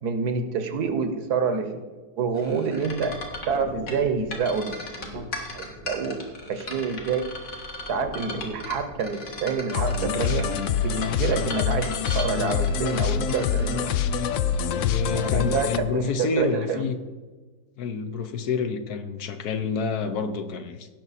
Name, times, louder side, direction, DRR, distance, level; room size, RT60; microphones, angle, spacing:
voice 1, 0.0-1.8 2.2-3.2 3.5-6.2 6.5-7.3 7.9-10.5 10.8-14.1 15.1-16.8, right 5 dB, 65° right, 8 dB, 1.3 m, -27 dB
sound 1, 2.4-14.9, left 2 dB, 50° left, 2.1 m, -37 dB
sound 2, 9.7-15.8, left 7 dB, 90° left, 0.6 m, -25 dB
voice 2, 14.8-17.0 17.8-20.9, left 5 dB, 65° left, 8 dB, 1.2 m, -28 dB
17.0 x 6.0 x 4.1 m, 1.3 s
omnidirectional pair, 1.9 m